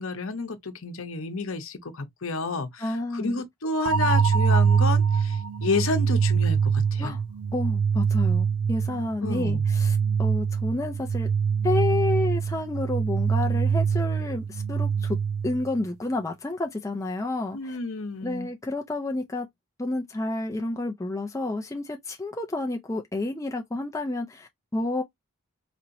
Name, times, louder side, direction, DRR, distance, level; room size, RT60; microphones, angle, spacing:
voice 1, 0.0-7.1 9.2-9.6 17.5-18.5, left 3 dB, 65° left, 0.8 m, -30 dB
voice 2, 2.8-3.4 7.0-7.2 7.5-11.3 11.6-15.2 15.4-17.8 18.2-19.5 19.8-25.0, left 2 dB, 15° left, 0.4 m, -30 dB
sound 1, 3.8-15.8, right 6 dB, 80° right, 0.5 m, -24 dB
4.2 x 2.9 x 2.5 m
head